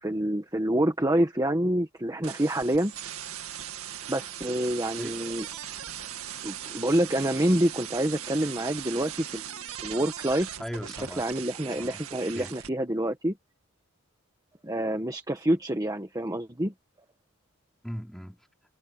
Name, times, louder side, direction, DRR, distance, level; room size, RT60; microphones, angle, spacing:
voice 1, 0.0-2.9 4.1-5.4 6.4-9.4 9.8-10.6 11.2-13.3 14.6-16.7, right 1 dB, 15° right, 1.5 m, -27 dB
sound 1, 2.2-12.7, right 10 dB, 85° right, 2.0 m, -39 dB
sound 2, 4.7-9.7, left 1 dB, 70° left, 7.1 m, -56 dB
voice 2, 10.6-11.3 11.7-12.0 12.3-12.5 17.8-18.5, equal, ahead, 3.4 m, -38 dB
head